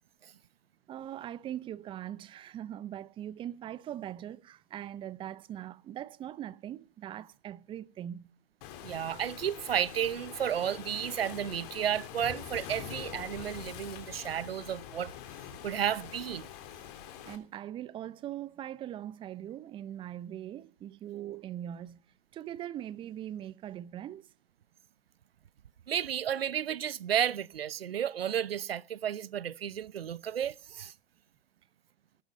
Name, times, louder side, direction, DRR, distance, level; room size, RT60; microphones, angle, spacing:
voice 1, 0.9-8.3 17.2-22.0 22.3-24.3, right 11 dB, 15° right, 0.7 m, -41 dB
Waves surf, 8.6-17.4, left 10 dB, 40° left, 3.5 m, -44 dB
voice 2, 8.8-15.1 15.6-16.5 25.9-30.9, right 9 dB, 70° right, 0.8 m, -32 dB
18.0 x 13.0 x 5.3 m
figure-of-eight pair, 115°, 31 cm